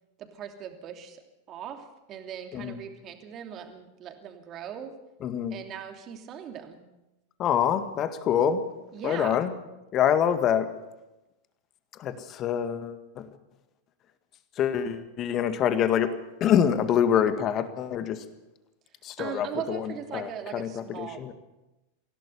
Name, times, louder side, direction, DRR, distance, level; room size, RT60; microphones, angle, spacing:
voice 1, 0.2-1.2 1.5-4.9 5.5-6.8 8.9-9.4 19.2-21.3, right 9 dB, 30° right, 5 dB, 3.0 m, -39 dB
voice 2, 5.2-5.6 7.4-8.6 9.0-9.5 9.9-10.7 12.0-13.3 14.6-16.1 16.4-18.2 19.0-21.3, left 9 dB, 30° left, 11 dB, 1.8 m, -26 dB
25.0 x 17.0 x 6.9 m, 0.99 s
figure-of-eight pair, 90°, 0 cm